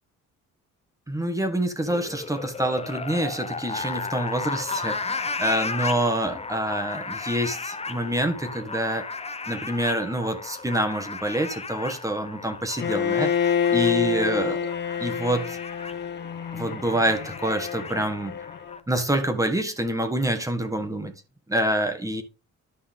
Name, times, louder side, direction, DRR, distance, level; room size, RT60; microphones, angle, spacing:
voice 1, 1.1-9.0 9.5-14.7 15.0-15.6 16.5-18.4 18.9-21.1 21.5-22.2, right 1 dB, 10° right, 1.5 m, -26 dB
sound 1, 1.8-18.8, left 4 dB, 20° left, 0.9 m, -35 dB
Bowed string instrument, 12.8-18.8, left 8 dB, 35° left, 0.5 m, -27 dB
11.5 x 5.6 x 3.7 m
cardioid pair, 90°, 30 cm